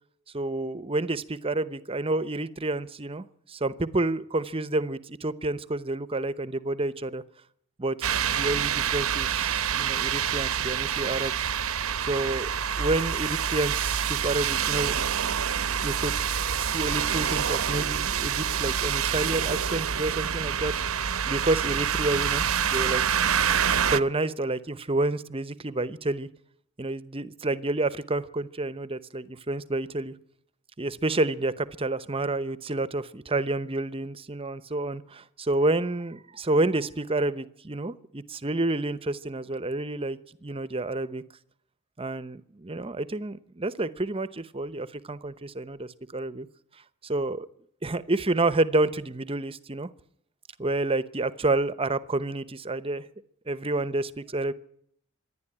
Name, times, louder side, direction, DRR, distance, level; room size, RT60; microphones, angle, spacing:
voice 1, 0.3-7.2 7.8-11.5 12.0-12.5 12.8-15.0 15.8-16.1 16.6-23.0 23.9-26.3 26.8-30.1 30.8-41.2 42.0-46.5 47.0-47.5 47.8-49.9 50.6-53.1 53.5-54.5, right 2 dB, 25° right, 14 dB, 0.8 m, -29 dB
sound 1, 8.0-24.0, right 8 dB, 80° right, 0.8 m, -27 dB
26.0 x 11.0 x 9.9 m, 0.70 s
head